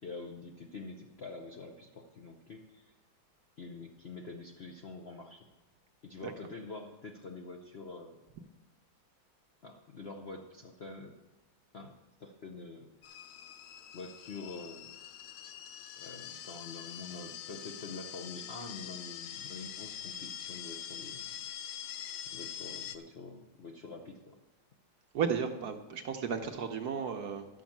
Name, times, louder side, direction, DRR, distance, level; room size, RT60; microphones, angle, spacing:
voice 1, 0.0-2.9 3.6-5.4 6.0-8.2 9.6-11.1 11.7-13.2 13.9-15.0 16.0-21.2 22.3-24.4, left 3 dB, 55° left, 2 dB, 0.7 m, -46 dB
sound 1, 13.0-23.0, left 10 dB, 85° left, 1.5 m, -44 dB
voice 2, 25.1-27.5, right 6 dB, 65° right, 6 dB, 1.1 m, -34 dB
11.5 x 6.3 x 7.2 m, 1.1 s
omnidirectional pair, 2.2 m